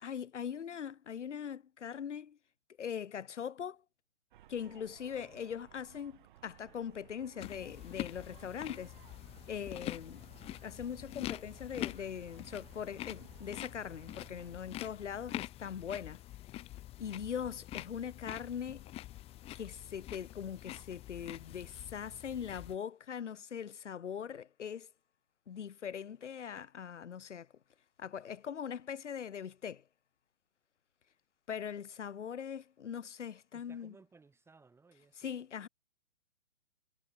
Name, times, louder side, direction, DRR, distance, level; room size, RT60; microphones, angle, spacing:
voice 1, 0.0-2.4 2.8-3.8 4.5-8.9 9.5-10.2 10.6-16.2 17.0-18.9 19.5-24.9 25.5-27.5 28.0-29.8 31.5-33.9 35.2-35.7, left 8 dB, 65° left, 1.0 m, -41 dB
sound 1, 4.3-14.6, right 13 dB, 40° right, 1.9 m, -59 dB
sound 2, 7.4-22.8, left 15 dB, 15° left, 1.4 m, -45 dB
voice 2, 9.7-10.0 33.5-35.3, right 4 dB, 5° right, 5.5 m, -61 dB
figure-of-eight pair, 130°, 39 cm